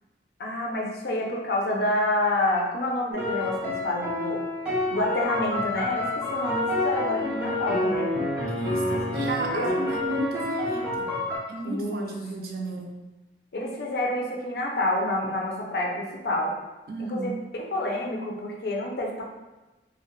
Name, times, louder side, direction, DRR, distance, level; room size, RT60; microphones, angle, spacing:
voice 1, 0.4-4.4 4.9-8.2 9.5-9.7 11.7-12.1 12.4-12.5 13.5-16.5 17.0-19.2, left 1 dB, 65° left, -1 dB, 0.5 m, -28 dB
sound 1, 3.1-11.4, left 1 dB, 10° right, 0.6 m, -28 dB
voice 2, 8.5-11.1 11.5-12.9 16.9-17.4, right 2 dB, 55° right, 1 dB, 0.4 m, -33 dB
2.2 x 2.1 x 3.0 m, 1.1 s
head